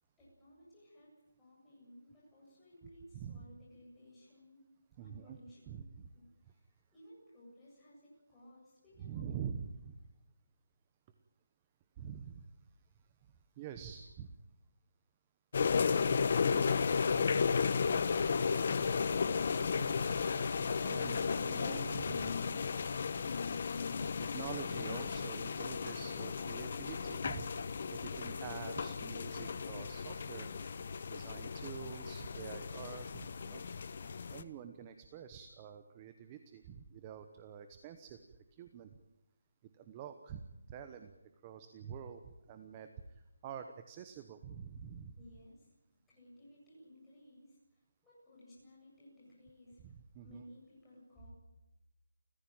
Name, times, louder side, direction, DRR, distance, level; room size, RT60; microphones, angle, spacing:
voice 1, 0.2-1.1 1.4-4.6 5.0-5.8 6.1-9.4 45.2-45.8 46.1-49.9 50.2-51.3, equal, 5° left, -8 dB, 7.9 m, -58 dB
voice 2, 3.1-3.5 5.0-5.4 5.7-6.1 9.0-10.0 12.0-12.5 13.6-14.3 20.8-22.4 24.2-27.5 27.9-30.5 31.1-33.6 34.3-38.2 38.5-38.9 39.8-40.4 40.7-41.1 41.4-42.9 43.4-45.1 49.8-50.4, right 8 dB, 15° right, 8 dB, 1.0 m, -46 dB
sound 1, 15.5-34.4, left 5 dB, 35° left, 1.2 m, -34 dB
29.5 x 15.0 x 9.0 m, 0.93 s
hypercardioid pair, 175°, 0 cm